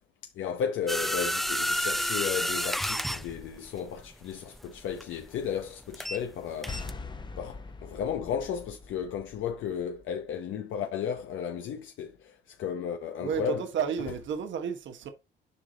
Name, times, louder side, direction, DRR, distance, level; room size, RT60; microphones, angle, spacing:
voice 1, 0.3-6.8 7.4-13.6, left 7 dB, 80° left, 0.9 m, -34 dB
sound 1, 0.9-6.3 6.6-6.9, equal, ahead, 0.5 m, -30 dB
sound 2, 6.7-10.1, left 3 dB, 20° left, 0.9 m, -42 dB
voice 2, 13.2-15.1, right 7 dB, 70° right, 1.3 m, -32 dB
7.1 x 4.9 x 3.9 m
cardioid pair, 90°, 20 cm